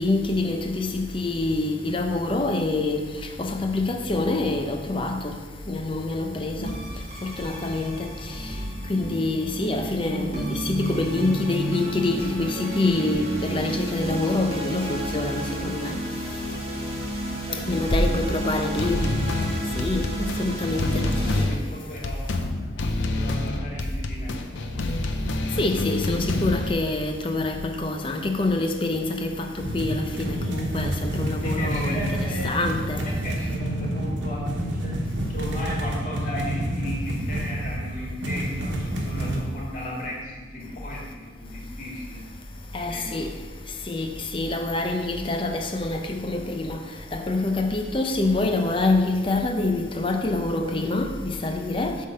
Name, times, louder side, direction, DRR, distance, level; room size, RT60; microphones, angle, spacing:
voice 1, 0.0-3.0 3.4-5.3 5.7-6.7 7.2-8.1 8.9-15.9 17.7-19.0 19.8-21.1 25.6-33.0 42.7-43.3 43.9-46.8 47.1-52.0, left 2 dB, 30° left, 0.6 m, -26 dB
voice 2, 6.5-6.9 17.3-18.2 18.4-18.7 21.0-25.0 31.4-32.7 32.9-42.3 42.9-43.2, left 1 dB, 45° left, 2.0 m, -36 dB
sound 1, 6.6-21.4, right 1 dB, 35° right, 1.4 m, -32 dB
sound 2, 18.8-26.7, left 2 dB, 90° left, 0.7 m, -27 dB
sound 3, 29.6-39.4, right 1 dB, 85° right, 1.1 m, -29 dB
8.2 x 3.7 x 6.4 m
head